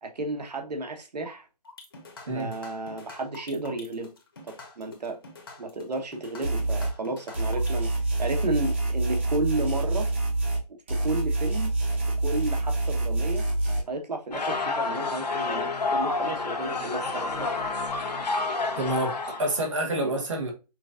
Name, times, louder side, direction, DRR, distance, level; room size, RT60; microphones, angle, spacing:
voice 1, 0.0-1.5 2.3-4.1 4.5-5.2 5.6-7.9 8.2-10.1 10.9-11.7 12.2-13.4 13.9-17.5 20.0-20.1, right 2 dB, 85° right, 1.2 m, -32 dB
sound 1, 1.6-7.9, left 3 dB, 35° left, 1.1 m, -46 dB
sound 2, 6.4-6.9 7.3-10.6 10.9-13.8, right 2 dB, 20° right, 1.0 m, -26 dB
sound 3, 14.3-19.6, left 3 dB, 85° left, 1.2 m, -29 dB
voice 2, 18.8-20.5, right 1 dB, 50° right, 1.3 m, -28 dB
6.1 x 2.5 x 2.5 m
hypercardioid pair, 180°, 20 cm